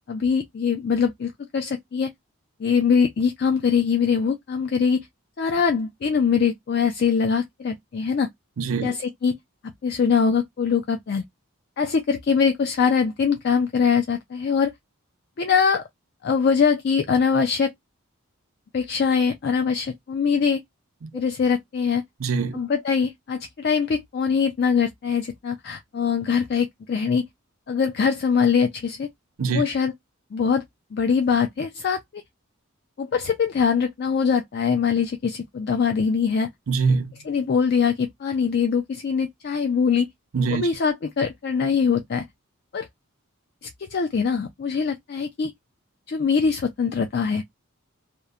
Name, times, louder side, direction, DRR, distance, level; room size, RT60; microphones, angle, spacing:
voice 1, 0.1-2.1 2.6-5.1 5.4-8.3 8.8-9.4 9.8-11.2 11.8-14.7 15.4-15.9 16.2-17.7 18.7-20.6 21.1-22.0 22.5-27.3 27.7-29.1 29.5-29.9 30.3-30.6 30.9-32.2 33.0-36.5 37.3-40.1 40.5-42.2 42.7-42.9 43.9-45.5 46.1-47.4, left 6 dB, 50° left, 0.3 m, -22 dB
voice 2, 8.6-9.0 21.0-21.1 22.2-22.6 29.4-29.6 36.7-37.2 40.3-40.7, right 4 dB, 75° right, 0.5 m, -23 dB
2.9 x 2.1 x 2.3 m
head